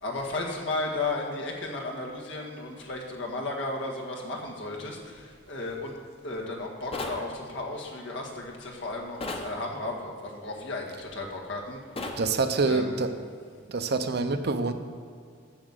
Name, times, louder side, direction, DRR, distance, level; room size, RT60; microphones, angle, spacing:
voice 1, 0.0-6.0 6.2-11.8 12.6-13.0, left 2 dB, 80° left, -1 dB, 1.6 m, -34 dB
sound 1, 6.9-7.2 9.2-9.5 12.0-12.2, left 2 dB, 30° left, 0.9 m, -33 dB
voice 2, 12.2-13.1 13.7-14.7, right 3 dB, 60° right, 8 dB, 0.7 m, -26 dB
7.4 x 7.1 x 6.6 m, 2.2 s
head